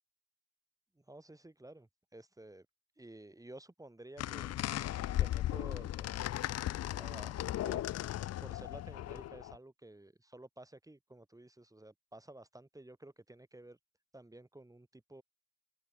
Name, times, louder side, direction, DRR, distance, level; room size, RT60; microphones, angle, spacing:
voice 1, 0.9-2.7 3.0-4.5 5.2-6.1 6.9-7.3 7.6-8.0 8.4-13.8 14.1-15.2, right 1 dB, 10° right, 5.1 m, -53 dB
sound 1, 4.2-9.5, left 13 dB, 55° left, 0.6 m, -36 dB
open air
cardioid pair, 90°, 30 cm